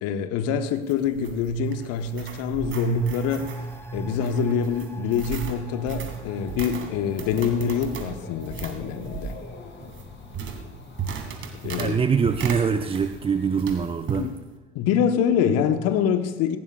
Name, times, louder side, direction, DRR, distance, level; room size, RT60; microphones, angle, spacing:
voice 1, 0.0-3.5 3.9-9.4 11.6-12.0 14.2-14.3 14.7-16.6, left 7 dB, 60° left, 8 dB, 1.2 m, -25 dB
sound 1, 0.7-13.3 13.6-14.3, right 7 dB, 45° right, 2.4 m, -37 dB
sound 2, 1.7-11.1 11.4-11.5, right 2 dB, 10° left, 1.5 m, -37 dB
Dog / Bird, 5.6-13.6, left 5 dB, 40° left, 2.5 m, -44 dB
voice 2, 11.8-14.3, right 6 dB, 20° right, 9 dB, 0.5 m, -24 dB
18.0 x 16.0 x 2.4 m, 1.3 s
hypercardioid pair, 65°, 29 cm